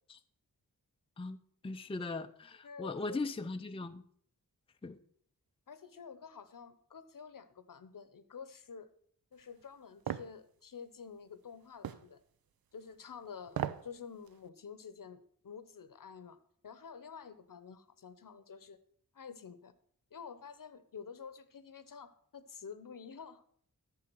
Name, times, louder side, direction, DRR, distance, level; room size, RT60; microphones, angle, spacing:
voice 1, 1.6-4.0 4.8-5.0, left 3 dB, 15° left, 8 dB, 0.5 m, -39 dB
voice 2, 2.6-3.2 5.7-8.9 9.3-12.2 12.7-16.4 16.6-18.8 19.1-19.7 20.1-23.4, left 6 dB, 65° left, 13 dB, 0.9 m, -49 dB
sound 1, 10.1-10.3 11.8-12.1 13.5-13.9 14.3-14.4, right 9 dB, 75° right, 0.6 m, -36 dB
11.0 x 6.8 x 6.1 m, 0.62 s
wide cardioid pair, 110°, 36 cm